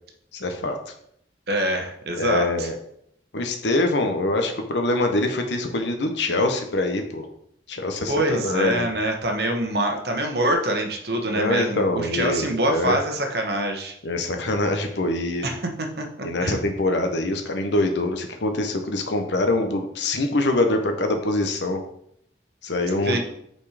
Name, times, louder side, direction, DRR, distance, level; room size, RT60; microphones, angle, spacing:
voice 1, 0.3-0.9 2.2-2.8 3.3-7.3 7.7-8.9 11.2-13.0 14.0-15.5 16.2-21.8 22.6-23.2, left 2 dB, 75° left, 5 dB, 0.9 m, -24 dB
voice 2, 1.5-2.7 8.1-13.9 15.4-15.6 16.0-16.1 16.4-16.5 23.0-23.2, right 1 dB, 60° right, 3 dB, 1.0 m, -24 dB
5.9 x 4.4 x 4.9 m, 0.71 s
head